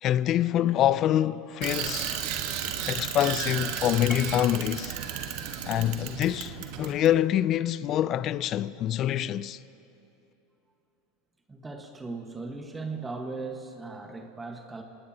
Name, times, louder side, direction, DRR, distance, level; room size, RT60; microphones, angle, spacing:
voice 1, 0.0-2.1 2.9-4.9 5.7-9.6, left 12 dB, 45° left, 0.5 m, -25 dB
Bicycle, 1.6-7.1, right 9 dB, 60° right, 1.4 m, -33 dB
Piano, 4.1-5.0, left 4 dB, 20° left, 0.8 m, -42 dB
voice 2, 11.5-14.8, right 3 dB, 15° right, 1.5 m, -38 dB
26.5 x 19.0 x 2.9 m
hypercardioid pair, 95°, 0 cm